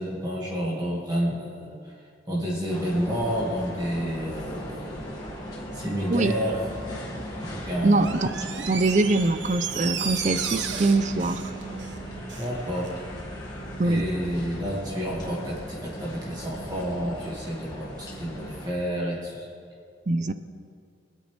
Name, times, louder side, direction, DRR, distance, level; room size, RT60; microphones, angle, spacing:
voice 1, 0.0-1.7 2.3-5.1 5.7-6.6 7.4-8.1 12.4-12.9 13.8-19.5, equal, 20° right, -5 dB, 1.9 m, -29 dB
sound 1, 2.7-18.7, equal, 20° left, 1.8 m, -37 dB
voice 2, 7.8-11.5 13.8-14.0 20.1-20.3, right 2 dB, 40° right, 12 dB, 0.5 m, -23 dB
Door, 7.9-12.5 12.8-12.9, right 7 dB, 70° right, 0.9 m, -34 dB
24.0 x 8.2 x 3.3 m, 2.3 s
head